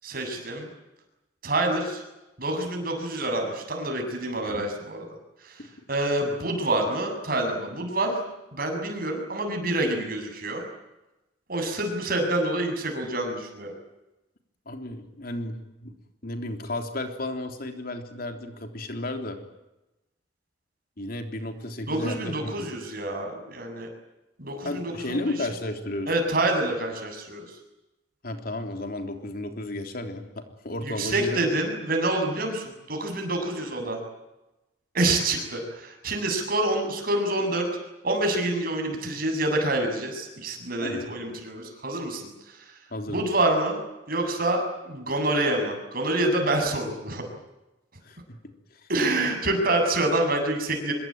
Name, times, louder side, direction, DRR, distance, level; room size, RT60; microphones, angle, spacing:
voice 1, 0.0-0.7 1.4-2.0 2.4-5.0 5.4-5.6 5.9-8.2 8.5-10.6 11.5-13.7 21.9-23.9 24.4-25.4 26.1-27.5 30.8-34.0 34.9-37.7 38.0-42.7 43.1-43.8 44.1-47.2 48.9-50.9, right 2 dB, 55° right, 4 dB, 7.7 m, -27 dB
voice 2, 14.7-15.9 16.2-19.4 21.0-22.6 24.6-26.1 28.2-31.4 40.8-41.1 42.9-43.2 48.0-48.4 48.7-48.9, left 1 dB, 55° left, 5 dB, 3.6 m, -33 dB
25.5 x 23.0 x 9.1 m, 0.97 s
head